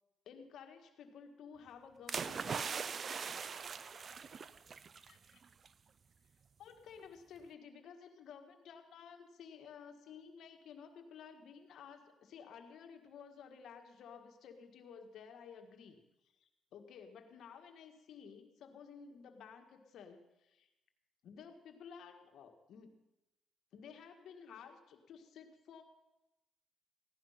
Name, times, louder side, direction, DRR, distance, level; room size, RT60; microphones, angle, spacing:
voice 1, 0.2-2.8 5.1-5.4 6.6-16.0 16.4-20.7 21.2-23.0 23.7-25.8, left 6 dB, 75° left, 5 dB, 1.7 m, -54 dB
sound 1, 2.1-5.1 5.4-5.7, right 6 dB, 45° right, 0.6 m, -41 dB
16.5 x 11.5 x 5.8 m, 0.97 s
cardioid pair, 90°, 0 cm